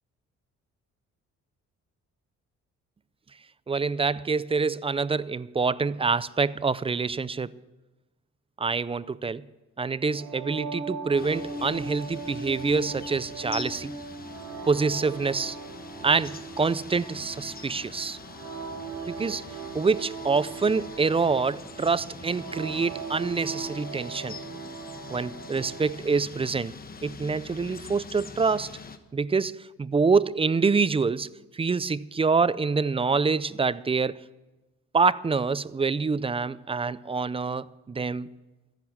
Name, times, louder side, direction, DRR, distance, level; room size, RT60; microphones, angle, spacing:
voice 1, 3.7-7.5 8.6-9.4 9.8-13.9 14.7-15.6 16.0-18.2 19.1-19.4 19.7-24.4 25.1-26.7 27.0-28.7 29.1-34.2 34.9-38.3, right 4 dB, 20° right, 0.4 m, -26 dB
sound 1, 10.1-26.0, right 3 dB, 75° right, 2.1 m, -39 dB
sound 2, 11.2-29.0, left 5 dB, 30° left, 1.2 m, -44 dB
14.5 x 11.0 x 7.3 m
cardioid pair, 90°, 30 cm